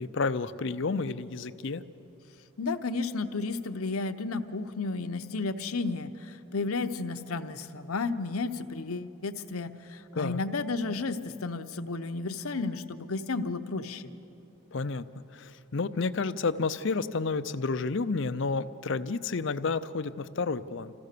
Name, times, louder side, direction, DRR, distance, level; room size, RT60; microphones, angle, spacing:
voice 1, 0.0-1.8 10.1-10.4 14.7-20.9, left 4 dB, 55° left, 11 dB, 0.6 m, -30 dB
voice 2, 2.6-14.1, left 3 dB, 80° left, 8 dB, 0.8 m, -32 dB
26.5 x 15.0 x 6.7 m, 2.9 s
head